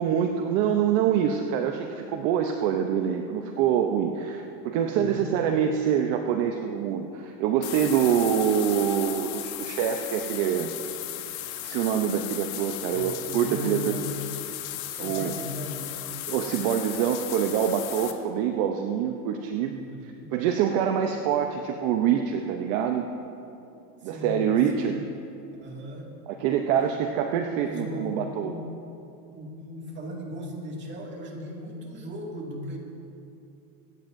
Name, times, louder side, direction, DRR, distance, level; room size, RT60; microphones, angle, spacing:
voice 1, 0.0-10.7 11.3-11.4 11.6-13.9 15.0-15.3 16.3-19.7 20.3-23.1 24.0-25.0 26.3-28.5, right 8 dB, 50° right, 4 dB, 0.8 m, -25 dB
voice 2, 4.9-5.3 12.9-14.3 14.7-16.1 19.6-20.3 24.0-24.9 25.6-26.1 27.6-28.7 29.3-32.8, left 1 dB, 25° right, -2 dB, 2.2 m, -37 dB
sound 1, 7.6-18.1, left 13 dB, 60° left, 1.2 m, -36 dB
25.0 x 9.2 x 2.6 m, 2.7 s
supercardioid pair, 140°, 47 cm